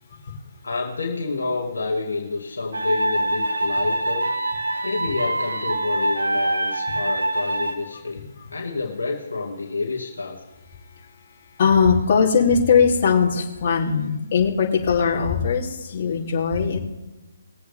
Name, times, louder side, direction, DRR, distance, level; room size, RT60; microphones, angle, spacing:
voice 1, 0.6-4.3 4.8-10.4, left 3 dB, 80° left, 0 dB, 2.1 m, -28 dB
sound 1, 2.7-7.7, right 1 dB, 80° right, 2.0 m, -24 dB
voice 2, 11.6-16.8, left 6 dB, 45° left, -3 dB, 2.9 m, -20 dB
21.0 x 7.9 x 3.5 m, 1.1 s
figure-of-eight pair, 145°, 0 cm